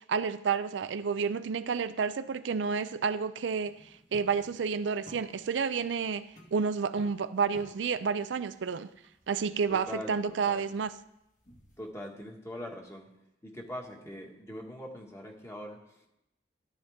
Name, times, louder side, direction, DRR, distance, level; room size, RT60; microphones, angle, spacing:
voice 1, 0.0-3.7 4.1-8.9 9.3-10.9, right 5 dB, 80° right, 0.4 m, -30 dB
sound 1, 3.6-11.9, equal, 45° left, 1.8 m, -57 dB
voice 2, 9.7-10.7 11.8-13.1 13.4-16.1, left 1 dB, 15° left, 1.7 m, -42 dB
13.0 x 10.5 x 3.6 m
head